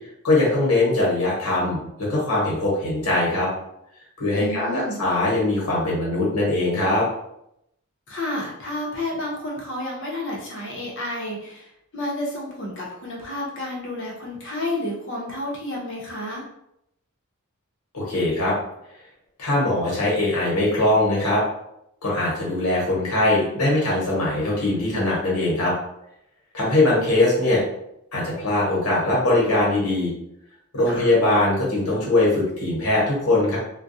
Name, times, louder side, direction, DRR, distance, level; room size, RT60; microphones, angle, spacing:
voice 1, 0.2-3.5 4.2-7.0 17.9-18.5 19.4-21.4 22.0-25.7 26.5-27.6 28.1-30.1 30.7-33.6, left 2 dB, 85° left, -5 dB, 1.1 m, -21 dB
voice 2, 4.3-5.0 8.1-16.4 30.8-31.1, left 1 dB, 55° left, -2 dB, 0.8 m, -31 dB
2.3 x 2.2 x 2.6 m, 0.78 s
head